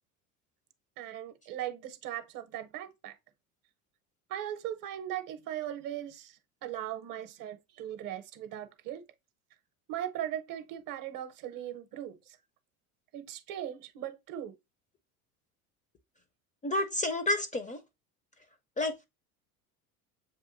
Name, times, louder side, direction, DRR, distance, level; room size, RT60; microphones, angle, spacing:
voice 1, 1.0-3.2 4.3-9.0 9.9-12.4 13.1-14.5, right 11 dB, 50° right, 0.7 m, -39 dB
voice 2, 16.6-17.8 18.8-19.0, left 1 dB, 20° left, 0.4 m, -30 dB
7.1 x 2.5 x 2.5 m
hypercardioid pair, 80°, 43 cm